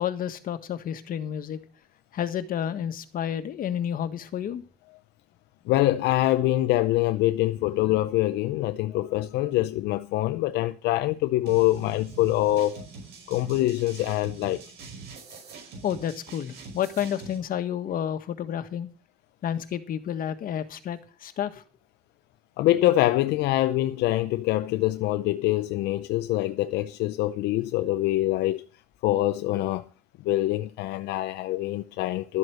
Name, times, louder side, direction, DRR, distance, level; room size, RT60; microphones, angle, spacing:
voice 1, 0.0-1.6 2.1-4.6 15.8-18.9 19.4-21.6, left 9 dB, 55° left, 1.6 m, -30 dB
voice 2, 5.7-12.9 13.3-14.6 22.6-28.6 29.0-29.9 30.2-32.4, left 16 dB, 85° left, 0.6 m, -24 dB
sound 1, 11.5-17.4, right 4 dB, 80° right, 5.2 m, -43 dB
12.5 x 7.9 x 6.4 m
cardioid pair, 110°, 17 cm